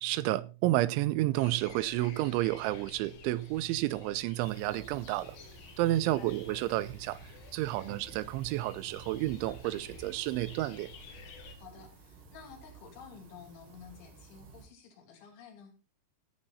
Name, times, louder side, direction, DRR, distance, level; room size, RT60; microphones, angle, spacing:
voice 1, 0.0-5.4 5.8-7.2 7.5-10.9, right 16 dB, 90° right, 3.1 m, -30 dB
sound 1, 1.3-11.6, left 5 dB, 70° left, 4.2 m, -52 dB
sound 2, 4.4-14.7, right 5 dB, 65° right, 4.9 m, -53 dB
voice 2, 6.0-6.4 7.8-8.1 11.5-15.7, left 6 dB, 85° left, 5.1 m, -52 dB
14.5 x 8.9 x 4.0 m
omnidirectional pair, 5.2 m